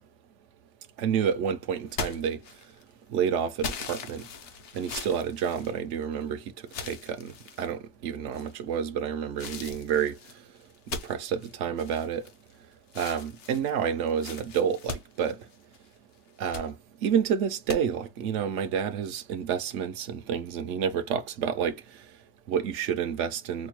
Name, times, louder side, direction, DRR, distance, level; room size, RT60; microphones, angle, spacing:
voice 1, 1.0-2.7 3.1-4.3 4.7-10.5 10.9-12.3 12.9-15.5 16.4-23.7, right 8 dB, 70° right, 0.8 m, -29 dB
sound 1, 1.9-2.9 3.6-6.2 6.7-7.7 8.3-8.8 9.4-12.6 12.9-15.9 16.3-16.7 17.7-17.8, left 5 dB, 60° left, 1.0 m, -39 dB
5.0 x 2.2 x 2.9 m
omnidirectional pair, 1.4 m